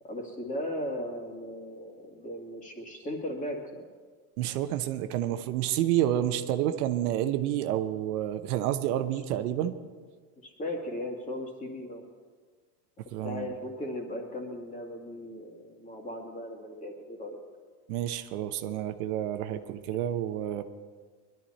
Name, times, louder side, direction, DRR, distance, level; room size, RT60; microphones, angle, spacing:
voice 1, 0.0-3.8 10.4-12.0 13.2-17.4, left 1 dB, 15° left, 1 dB, 2.1 m, -37 dB
voice 2, 4.4-9.7 13.1-13.5 17.9-20.6, right 12 dB, 75° right, 9 dB, 1.0 m, -29 dB
20.5 x 12.0 x 4.3 m, 1.5 s
supercardioid pair, 145°, 45 cm